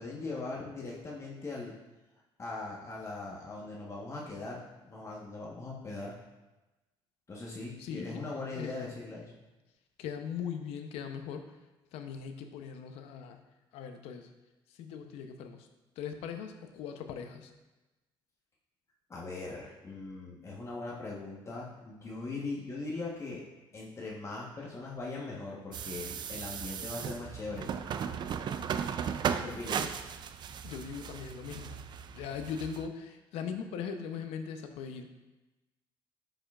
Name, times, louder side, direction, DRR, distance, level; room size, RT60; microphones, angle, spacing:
voice 1, 0.0-1.7 2.4-6.1 7.3-9.3 19.1-23.4 23.7-27.7 28.2-28.3 29.3-29.9, left 3 dB, 30° left, -3 dB, 1.2 m, -40 dB
voice 2, 7.8-8.2 8.5-8.7 10.0-11.5 11.9-13.4 13.7-14.3 14.8-15.7 16.0-17.5 29.8-29.9 30.6-35.1, left 7 dB, 90° left, 7 dB, 0.7 m, -40 dB
sound 1, 25.7-32.9, right 7 dB, 50° right, 0.4 m, -36 dB
10.0 x 5.5 x 2.4 m, 1.1 s
cardioid pair, 110°, 10 cm